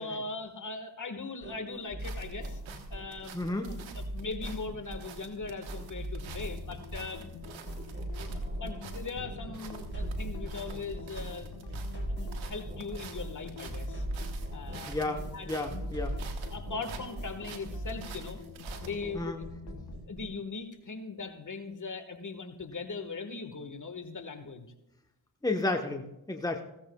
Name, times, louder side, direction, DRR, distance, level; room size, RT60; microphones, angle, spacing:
voice 1, 0.0-2.6 2.9-3.4 3.9-7.2 8.6-11.5 12.1-14.0 14.5-15.0 15.3-15.8 16.5-18.4 18.8-19.5 20.1-24.7, left 4 dB, 40° left, 7 dB, 1.6 m, -40 dB
sound 1, 1.4-20.4, right 1 dB, 25° right, 4.3 m, -40 dB
sound 2, 1.7-19.1, right 6 dB, 85° right, 1.3 m, -49 dB
voice 2, 3.3-3.7 14.9-16.1 19.1-19.4 25.4-26.6, left 2 dB, 10° left, 3 dB, 1.2 m, -32 dB
sound 3, 6.3-20.0, left 6 dB, 60° left, 1.5 m, -48 dB
16.0 x 15.0 x 2.3 m, 0.88 s
supercardioid pair, 50°, 46 cm